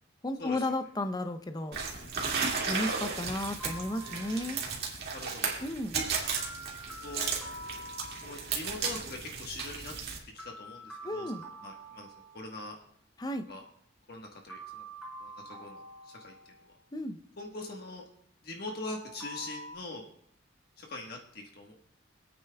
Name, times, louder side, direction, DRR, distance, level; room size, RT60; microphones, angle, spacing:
voice 1, 0.2-1.8 2.6-4.6 5.6-6.0 11.0-11.4 13.2-13.5 16.9-17.2, left 1 dB, 20° left, 9 dB, 0.6 m, -33 dB
sound 1, 1.7-10.2, right 5 dB, 55° right, 2.1 m, -34 dB
sound 2, 3.6-4.7 6.4-8.7 10.4-12.7 14.5-16.8 18.7-19.7, right 1 dB, 5° right, 4.2 m, -46 dB
voice 2, 5.1-5.6 7.0-7.3 8.2-9.9 10.3-12.8 13.5-13.6 14.1-14.8 15.2-16.7 17.4-18.0 18.4-20.0 20.8-21.7, left 2 dB, 55° left, 1 dB, 1.3 m, -43 dB
25.5 x 8.8 x 2.3 m, 0.65 s
head